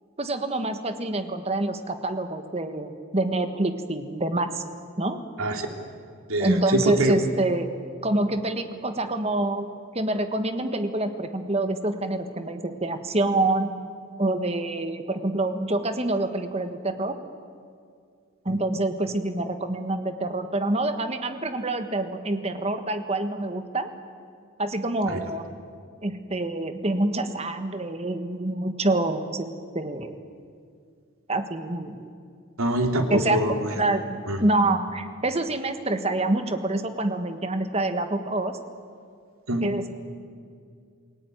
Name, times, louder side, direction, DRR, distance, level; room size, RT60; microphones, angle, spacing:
voice 1, 0.2-4.6 5.0-5.2 6.4-7.7 8.0-9.7 9.9-13.7 14.2-17.2 18.4-23.9 24.6-25.5 26.0-29.5 29.7-30.1 31.3-32.0 33.1-33.4 33.8-38.6 39.6-39.9, right 2 dB, 30° right, 8 dB, 1.5 m, -26 dB
voice 2, 6.3-7.1 18.5-18.6 32.6-33.8 34.3-34.4 39.5-39.7, right 1 dB, 85° right, 4 dB, 3.0 m, -24 dB
28.0 x 18.0 x 9.3 m, 2.2 s
head